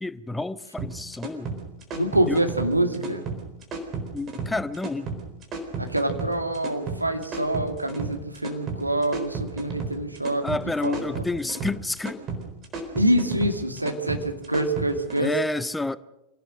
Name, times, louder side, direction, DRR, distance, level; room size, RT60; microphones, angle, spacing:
voice 1, 0.0-1.5 2.3-2.4 4.1-5.1 10.4-12.2 15.2-16.0, left 2 dB, 5° left, 0.7 m, -29 dB
sound 1, 0.8-15.2, right 4 dB, 30° right, 4.2 m, -33 dB
voice 2, 1.9-3.2 5.8-10.5 10.8-11.2 12.9-15.3, right 1 dB, 85° right, 2.2 m, -25 dB
26.5 x 17.0 x 6.5 m
figure-of-eight pair, 90°, 0 cm